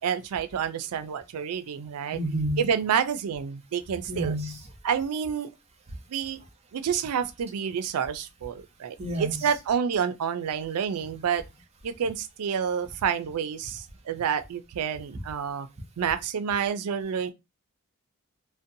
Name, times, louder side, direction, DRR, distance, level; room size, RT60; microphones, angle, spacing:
voice 1, 0.0-2.2 2.6-4.3 4.8-5.5 6.1-6.4 6.7-11.4 11.8-15.7 16.0-17.3, right 7 dB, 85° right, 0.4 m, -29 dB
voice 2, 2.1-2.7 4.1-4.7 9.0-9.5 11.0-11.1, right 1 dB, 30° right, 0.5 m, -30 dB
2.5 x 2.1 x 2.6 m
head